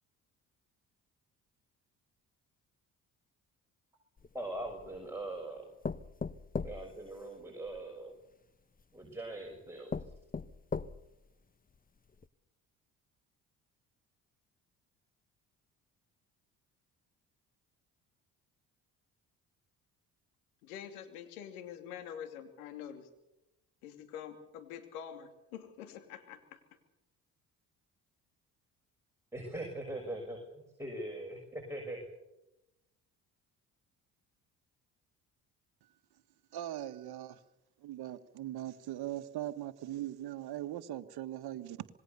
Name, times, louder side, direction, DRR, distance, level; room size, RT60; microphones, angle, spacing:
sound 1, 4.2-5.1 5.8-7.8 8.8-8.9 9.5-9.6 9.9-11.3 11.7-11.8 12.2-12.3, left 4 dB, 20° left, 1.0 m, -39 dB
voice 1, 4.3-5.6 6.6-8.1 8.9-9.9 29.3-32.0, right 1 dB, 5° right, 0 dB, 6.5 m, -41 dB
voice 2, 20.6-23.1 23.8-26.6, left 9 dB, 85° left, 8 dB, 2.7 m, -46 dB
voice 3, 36.5-37.4 37.8-41.9, right 13 dB, 60° right, 10 dB, 1.6 m, -40 dB
26.5 x 20.5 x 6.9 m, 0.94 s
hypercardioid pair, 55°, 42 cm